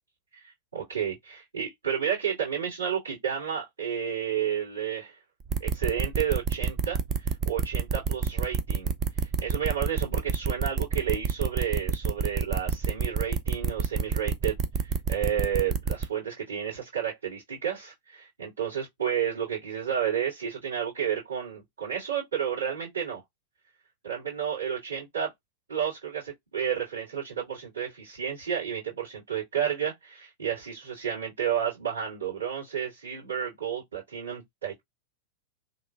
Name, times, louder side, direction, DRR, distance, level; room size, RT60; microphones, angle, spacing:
voice 1, 0.3-5.2 5.6-23.2 24.0-25.3 25.7-34.8, right 8 dB, 75° right, 2.0 m, -31 dB
sound 1, 5.5-16.0, right 6 dB, 35° right, 0.4 m, -27 dB
3.1 x 2.4 x 2.3 m
figure-of-eight pair, 90°, 0 cm